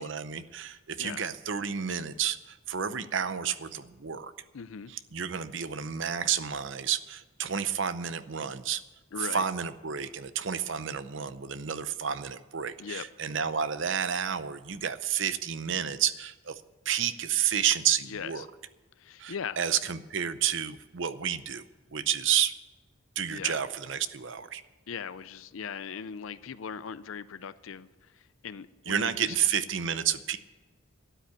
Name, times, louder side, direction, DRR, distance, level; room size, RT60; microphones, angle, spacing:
voice 1, 0.0-4.3 4.9-8.8 9.2-16.6 16.9-18.5 19.2-21.6 21.9-22.5 23.2-24.6 28.9-30.4, right 8 dB, 60° right, 0.7 m, -30 dB
voice 2, 1.0-1.3 4.5-4.9 9.1-9.4 12.8-13.1 18.1-18.5 19.0-19.6 23.3-23.6 24.9-29.5, left 6 dB, 70° left, 0.5 m, -39 dB
13.0 x 9.1 x 8.3 m
head